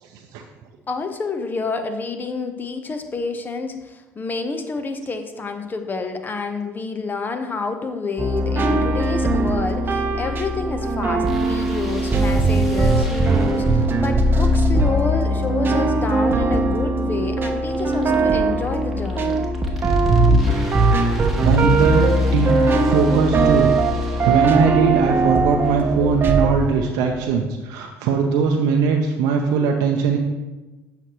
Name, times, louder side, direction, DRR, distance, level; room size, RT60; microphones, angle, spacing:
voice 1, 0.0-0.4 21.4-22.6 22.9-23.7 24.0-30.2, right 6 dB, 80° right, 2 dB, 0.6 m, -20 dB
voice 2, 0.9-19.4, left 4 dB, 30° left, 7 dB, 0.8 m, -28 dB
sound 1, 8.2-26.5, right 2 dB, 35° right, 0.8 m, -19 dB
sound 2, 11.3-27.4, equal, ahead, 1.5 m, -40 dB
7.9 x 5.8 x 3.0 m, 1.1 s
supercardioid pair, 85°, 6 cm